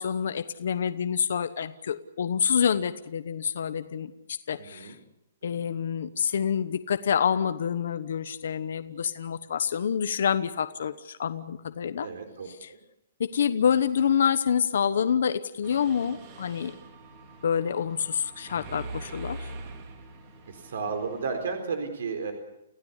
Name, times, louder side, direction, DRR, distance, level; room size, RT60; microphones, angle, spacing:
voice 1, 0.0-5.0 5.4-12.1 12.5-12.7 13.2-16.7 17.4-19.5, left 7 dB, 60° left, 11 dB, 1.1 m, -27 dB
voice 2, 4.6-5.0 5.5-5.6 12.0-12.8 20.5-22.3, right 5 dB, 65° right, 6 dB, 4.2 m, -33 dB
Mechanisms, 15.6-21.5, right 2 dB, 25° right, 3.0 m, -43 dB
29.5 x 16.0 x 8.3 m, 0.87 s
hypercardioid pair, 180°, 0 cm